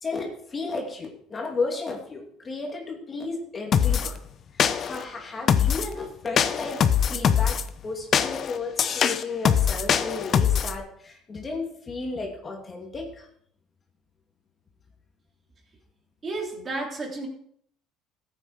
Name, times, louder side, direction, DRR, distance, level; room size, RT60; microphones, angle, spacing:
voice 1, 0.0-4.2 4.5-6.8 7.1-13.3, left 3 dB, 25° left, 1 dB, 2.6 m, -33 dB
sound 1, 3.7-4.1 4.6-5.0 5.5-5.9 6.4-7.6 8.1-10.8, left 8 dB, 45° left, 0.8 m, -22 dB
voice 2, 16.2-17.3, right 2 dB, 30° right, 1 dB, 3.3 m, -32 dB
13.5 x 8.9 x 4.9 m, 0.65 s
supercardioid pair, 110°, 0 cm